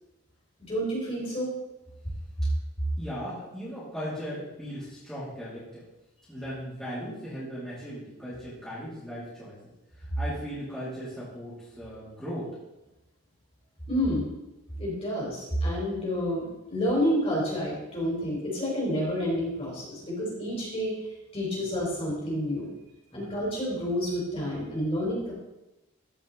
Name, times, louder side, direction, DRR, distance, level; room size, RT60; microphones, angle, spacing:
voice 1, 0.7-1.5 13.9-14.3 14.8-21.0 21.3-22.7 23.1-25.3, equal, 25° left, -4 dB, 3.5 m, -29 dB
voice 2, 3.0-5.8 6.3-9.7 10.0-12.5 21.6-21.7 23.1-23.3, equal, 5° left, -12 dB, 2.5 m, -38 dB
14.0 x 5.2 x 3.9 m, 0.97 s
head